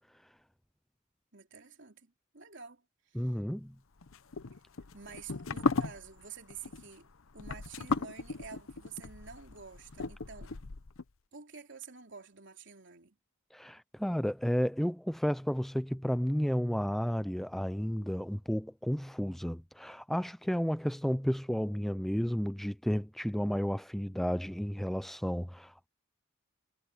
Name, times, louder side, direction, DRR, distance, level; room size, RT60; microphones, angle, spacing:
voice 1, 1.3-3.3 4.9-10.5 11.3-13.2, right 6 dB, 60° right, 3.4 m, -49 dB
voice 2, 3.1-3.7 13.5-25.9, equal, ahead, 0.3 m, -32 dB
sound 1, 4.0-11.0, left 4 dB, 80° left, 0.9 m, -36 dB
head